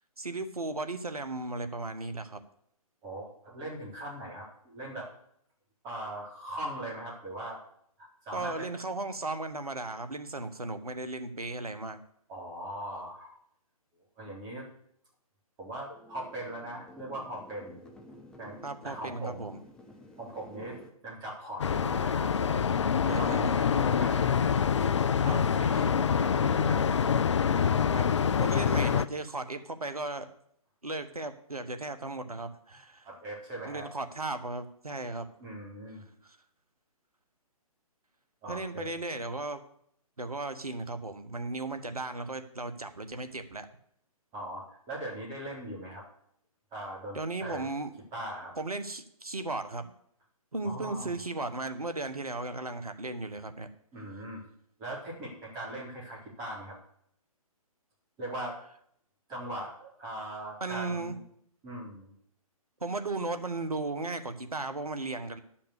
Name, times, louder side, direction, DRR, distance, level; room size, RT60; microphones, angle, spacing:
voice 1, 0.2-2.4 8.3-12.0 18.6-19.6 23.1-23.5 25.2-25.4 27.9-28.1 28.4-30.3 30.8-33.1 33.6-35.3 38.5-39.6 40.2-43.7 47.1-47.9 48.6-49.9 50.5-53.7 60.6-61.2 62.8-65.4, right 2 dB, 80° right, 9 dB, 1.2 m, -36 dB
voice 2, 3.0-5.1 5.8-7.6 8.0-8.7 12.3-13.4 14.2-14.6 15.6-17.8 18.4-18.6 18.8-19.5 20.2-20.8 21.0-22.6 23.0-24.4 24.7-27.7 33.0-33.9 35.4-36.0 38.4-38.9 44.3-46.0 46.7-47.7 48.1-48.5 50.6-51.2 53.9-54.4 54.8-56.8 58.2-58.6 59.3-61.2 61.6-62.1, right 1 dB, 20° right, -4 dB, 4.3 m, -40 dB
sound 1, 15.9-20.9, left 1 dB, 5° left, 0.8 m, -52 dB
sound 2, 21.6-29.0, left 7 dB, 50° left, 0.5 m, -26 dB
11.5 x 5.9 x 6.7 m, 0.69 s
figure-of-eight pair, 130°, 19 cm